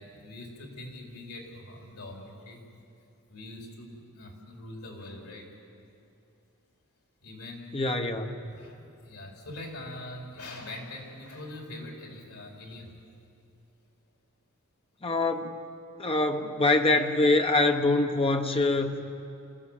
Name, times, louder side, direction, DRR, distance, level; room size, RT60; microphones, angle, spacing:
voice 1, 0.0-2.6 3.3-5.5 7.2-8.0 8.5-13.0, left 1 dB, 80° left, 1 dB, 4.0 m, -43 dB
voice 2, 7.7-8.4 15.0-15.5 16.0-19.0, left 2 dB, 25° left, 5 dB, 1.2 m, -24 dB
26.5 x 16.0 x 7.3 m, 2.6 s
head